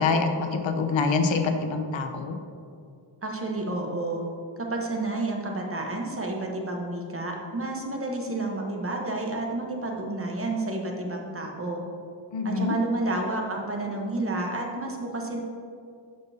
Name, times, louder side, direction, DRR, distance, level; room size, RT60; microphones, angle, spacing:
voice 1, 0.0-2.4 12.3-12.7, left 4 dB, 85° left, 6 dB, 0.8 m, -25 dB
voice 2, 3.2-4.2 4.6-11.8 12.4-15.4, right 2 dB, 30° right, 1 dB, 1.0 m, -30 dB
12.0 x 5.2 x 2.8 m, 2.4 s
wide cardioid pair, 100°, 44 cm